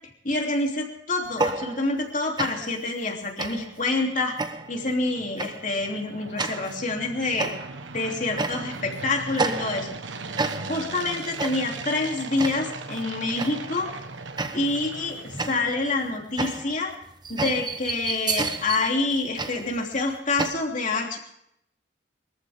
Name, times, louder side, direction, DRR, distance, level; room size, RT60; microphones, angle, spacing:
voice 1, 0.2-4.4 4.7-7.5 7.9-9.9 10.7-13.9 14.5-16.9 17.3-21.2, left 2 dB, 40° left, 1 dB, 3.1 m, -27 dB
sound 1, 1.3-2.1 2.4-2.8 3.4-3.8 4.4-4.8 5.4-5.7 6.4-6.8 7.4-7.9 8.4-8.9 9.4-10.0 10.4-10.9 11.4-11.8 12.4-12.8 13.4-13.7 14.4-14.9 15.4-20.5, right 3 dB, 25° right, 1.0 m, -31 dB
sound 2, 3.9-16.2, right 3 dB, 75° right, 1.3 m, -39 dB
23.5 x 14.0 x 3.6 m, 0.74 s
head